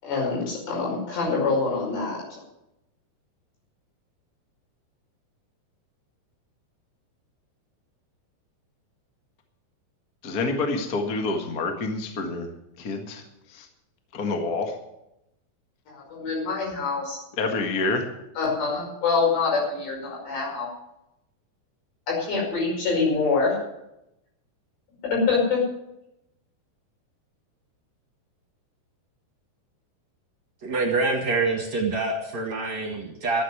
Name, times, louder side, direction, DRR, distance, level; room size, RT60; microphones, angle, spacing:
voice 1, 0.0-2.4 15.9-17.2 18.4-20.7 22.1-23.6 25.1-25.6, left 4 dB, 85° left, -3 dB, 7.5 m, -25 dB
voice 2, 10.2-12.5 12.8-13.2 13.5-13.7 14.1-14.8 17.4-18.1, left 3 dB, 55° left, 4 dB, 1.0 m, -27 dB
voice 3, 30.6-33.4, right 3 dB, 60° right, 2 dB, 2.0 m, -26 dB
12.0 x 8.5 x 9.7 m, 0.86 s
omnidirectional pair, 4.8 m